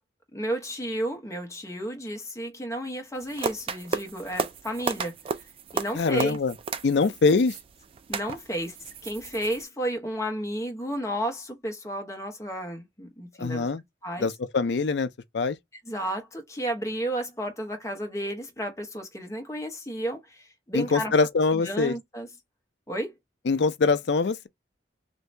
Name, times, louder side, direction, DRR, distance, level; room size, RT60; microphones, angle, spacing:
voice 1, 0.3-5.4 5.7-6.4 8.1-13.7 14.0-14.3 15.9-21.1 21.6-22.3 22.9-23.2, right 1 dB, 15° left, 0.9 m, -32 dB
sound 1, 3.1-9.6, right 5 dB, 30° right, 0.3 m, -34 dB
voice 2, 5.9-6.5 6.8-7.6 13.4-13.8 14.2-15.6 20.7-22.0 23.5-24.5, left 4 dB, 70° left, 0.5 m, -23 dB
2.8 x 2.6 x 3.2 m
head